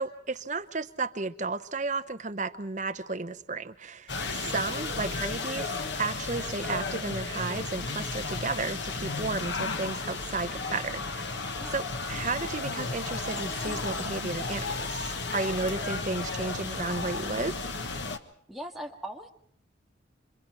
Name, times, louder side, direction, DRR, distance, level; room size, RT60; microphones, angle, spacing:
voice 1, 0.0-11.4 11.7-17.7, right 3 dB, 40° right, 9 dB, 0.9 m, -33 dB
sound 1, 4.1-18.2, left 3 dB, 65° left, 1.4 m, -33 dB
voice 2, 4.2-4.6 11.6-11.7 18.5-19.3, right 1 dB, ahead, 1 dB, 1.8 m, -40 dB
28.0 x 25.0 x 4.4 m, 0.65 s
head